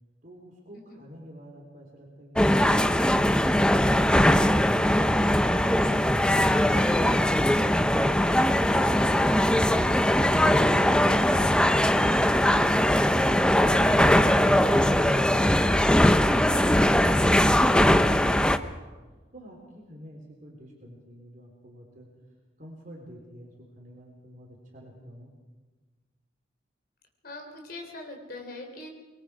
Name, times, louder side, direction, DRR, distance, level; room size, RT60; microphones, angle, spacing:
voice 1, 0.2-2.7 19.3-22.1 22.6-25.3, equal, 40° right, -1 dB, 3.6 m, -47 dB
sound 1, 2.4-18.6, left 1 dB, 5° left, 0.6 m, -21 dB
voice 2, 27.2-28.9, left 2 dB, 50° left, 3 dB, 3.7 m, -41 dB
24.5 x 22.0 x 4.9 m, 1.3 s
head